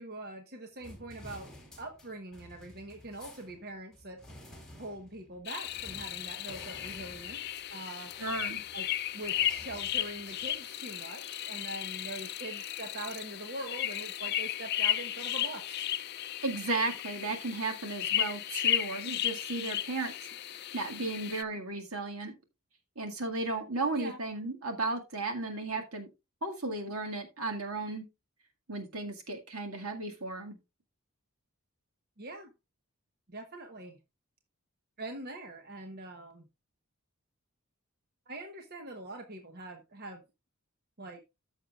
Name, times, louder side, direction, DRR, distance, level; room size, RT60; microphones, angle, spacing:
voice 1, 0.0-1.5 1.8-4.2 4.8-8.1 8.7-8.9 9.1-15.9 23.9-24.2 32.2-32.5 33.3-34.0 35.0-36.5 38.3-40.2 41.0-41.2, right 2 dB, 45° right, 4 dB, 1.1 m, -43 dB
sound 1, 0.8-10.6, left 1 dB, ahead, 2.6 m, -52 dB
sound 2, 5.5-21.4, left 11 dB, 45° left, 0.4 m, -35 dB
voice 2, 8.2-8.6 16.4-20.1 20.7-22.3 23.0-26.1 26.4-28.1 28.7-30.6, right 3 dB, 70° right, 4 dB, 2.0 m, -34 dB
14.5 x 6.4 x 2.4 m, 0.25 s
head